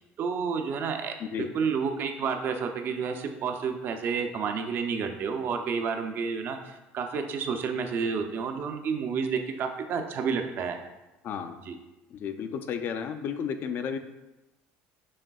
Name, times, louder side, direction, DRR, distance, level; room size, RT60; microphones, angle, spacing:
voice 1, 0.2-10.8 11.7-11.8, right 5 dB, 50° right, 6 dB, 0.5 m, -30 dB
voice 2, 1.2-1.5 11.2-11.6 12.1-14.0, left 7 dB, 50° left, 9 dB, 0.4 m, -33 dB
6.3 x 3.3 x 2.3 m, 1.0 s
cardioid pair, 115°, 5 cm